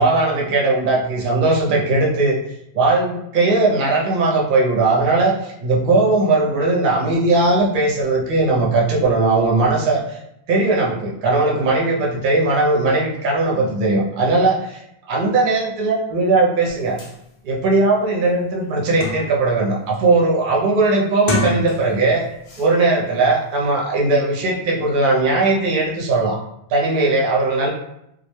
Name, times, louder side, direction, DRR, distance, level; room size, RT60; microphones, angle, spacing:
voice 1, 0.0-2.4 2.7-10.2 10.5-17.0 17.4-22.3 22.6-26.4 26.7-27.7, right 3 dB, 60° right, -1 dB, 0.7 m, -18 dB
sound 1, 16.7-16.8 17.0-17.2 17.7-17.8 18.2-19.5 19.9-20.3 21.1-22.1 22.4-22.7, left 1 dB, 60° left, 0.7 m, -27 dB
2.2 x 2.1 x 3.0 m, 0.79 s
omnidirectional pair, 1.1 m